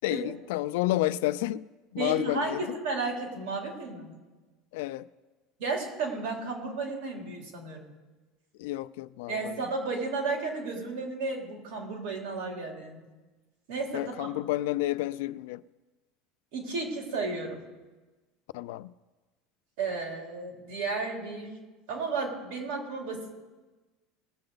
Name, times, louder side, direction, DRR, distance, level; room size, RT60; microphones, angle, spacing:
voice 1, 0.0-1.6 1.9-2.6 4.7-5.1 8.6-9.6 13.9-15.6 18.5-18.9, left 16 dB, 85° left, 0.4 m, -30 dB
voice 2, 1.9-4.2 5.6-7.9 9.3-13.0 13.7-14.3 16.5-17.6 19.8-21.5 21.9-23.3, right 3 dB, 75° right, 3.6 m, -33 dB
20.5 x 7.8 x 4.0 m
cardioid pair, 160°, 0 cm